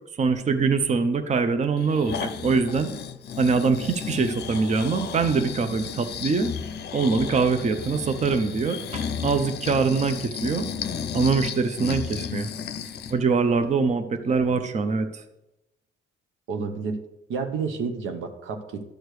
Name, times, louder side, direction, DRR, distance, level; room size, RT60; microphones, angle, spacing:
voice 1, 0.2-2.9 3.4-6.5 6.9-10.7 11.1-12.5 13.1-15.2, right 4 dB, 35° right, 9 dB, 0.7 m, -23 dB
Breathing, 1.8-13.2 13.6-13.7, left 7 dB, 55° left, 0.6 m, -34 dB
voice 2, 14.2-14.5 16.5-17.0 17.3-18.8, right 5 dB, 85° right, 6 dB, 0.9 m, -30 dB
12.0 x 6.5 x 3.2 m, 0.93 s
cardioid pair, 90°, 20 cm